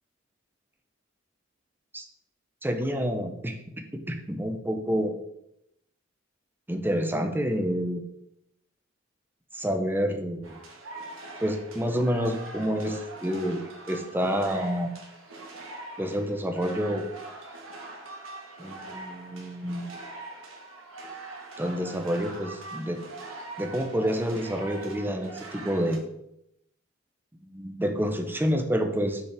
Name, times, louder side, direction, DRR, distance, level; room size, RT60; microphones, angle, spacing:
voice 1, 2.6-5.2 6.7-8.0 9.5-10.5 11.4-15.0 16.0-17.0 18.6-19.9 21.6-23.0 23.6-26.0 27.4-29.2, equal, 10° right, 5 dB, 0.7 m, -28 dB
sound 1, 10.4-26.0, right 2 dB, 80° right, 1.4 m, -42 dB
6.6 x 5.0 x 3.4 m, 0.79 s
head